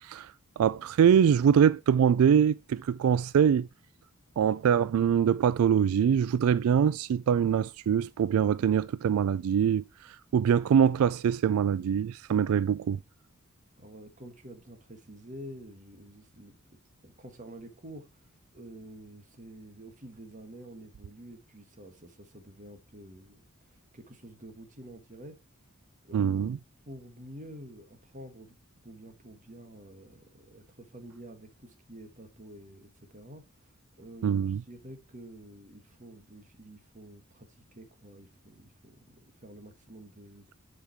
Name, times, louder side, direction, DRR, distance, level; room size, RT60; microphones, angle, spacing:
voice 1, 0.6-3.7 4.4-9.8 10.3-13.0 26.1-26.6 34.2-34.6, right 8 dB, 90° right, 0.3 m, -23 dB
voice 2, 13.8-16.6 17.0-23.4 23.7-25.4 26.0-26.5 26.8-28.6 28.8-40.5, right 1 dB, 35° right, 1.5 m, -48 dB
7.2 x 5.1 x 4.5 m
head